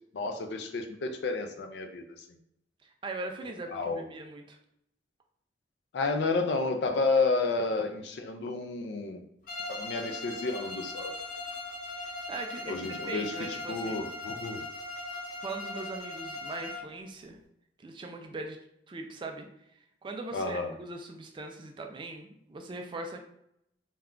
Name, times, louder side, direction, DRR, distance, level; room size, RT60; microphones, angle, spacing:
voice 1, 0.1-2.0 3.7-4.0 5.9-9.2 9.7-11.1 12.7-14.6 20.3-20.7, left 3 dB, 70° left, 6 dB, 0.4 m, -31 dB
voice 2, 2.8-4.6 12.0-14.0 15.4-17.4 17.8-18.6 18.9-19.5 20.0-23.2, right 2 dB, 25° right, 4 dB, 0.3 m, -40 dB
Bowed string instrument, 9.5-16.9, left 2 dB, 50° left, 0.7 m, -39 dB
2.2 x 2.2 x 3.6 m, 0.75 s
head